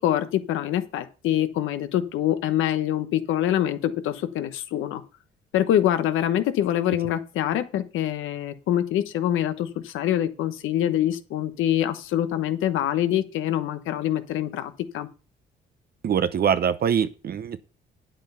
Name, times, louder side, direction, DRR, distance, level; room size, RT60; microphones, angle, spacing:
voice 1, 0.0-5.0 5.5-15.1, left 11 dB, 85° left, 11 dB, 1.1 m, -25 dB
voice 2, 16.0-17.6, right 8 dB, 50° right, 11 dB, 0.7 m, -23 dB
8.9 x 7.6 x 5.5 m, 0.36 s
cardioid pair, 90°, 20 cm